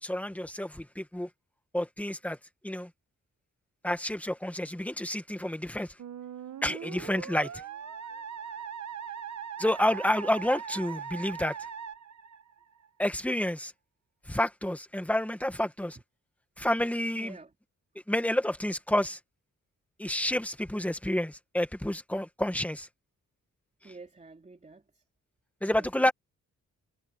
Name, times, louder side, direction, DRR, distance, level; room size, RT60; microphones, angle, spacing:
voice 1, 0.0-1.3 1.7-2.4 2.6-2.9 3.8-6.0 6.6-7.6 9.6-11.6 13.0-13.7 14.3-16.0 16.6-17.3 18.1-19.2 20.0-22.9 23.8-23.9 25.6-26.1, left 1 dB, 5° left, 1.6 m, -29 dB
Musical instrument, 6.0-12.9, right 8 dB, 65° right, 1.3 m, -40 dB
voice 2, 17.1-17.5 23.8-25.0 25.6-26.1, right 3 dB, 25° right, 3.0 m, -49 dB
wide cardioid pair, 115°, 30 cm